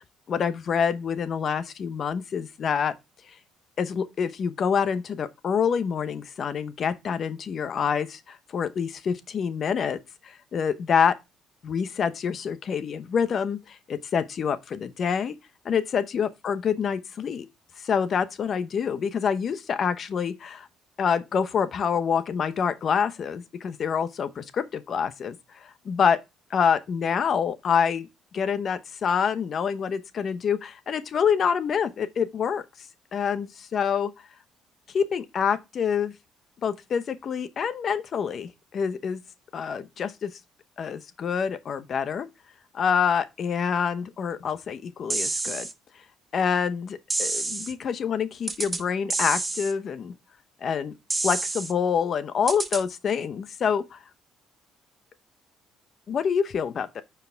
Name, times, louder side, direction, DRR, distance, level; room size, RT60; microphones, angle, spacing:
voice 1, 0.0-2.9 3.8-10.0 10.2-11.2 11.6-15.3 15.6-17.5 17.8-20.7 21.0-26.2 26.5-28.1 28.3-32.9 33.1-34.1 34.9-36.1 36.6-39.2 39.5-40.3 40.8-42.3 42.7-45.7 46.3-50.1 50.6-50.9 51.2-54.0 56.1-57.0, left 7 dB, 50° left, 0.8 m, -26 dB
sound 1, 45.1-45.7 47.1-47.7 48.5-48.8 49.1-49.7 51.1-51.7 52.5-52.8, right 3 dB, 25° right, 1.1 m, -28 dB
9.2 x 4.7 x 3.5 m
supercardioid pair, 75°, 0 cm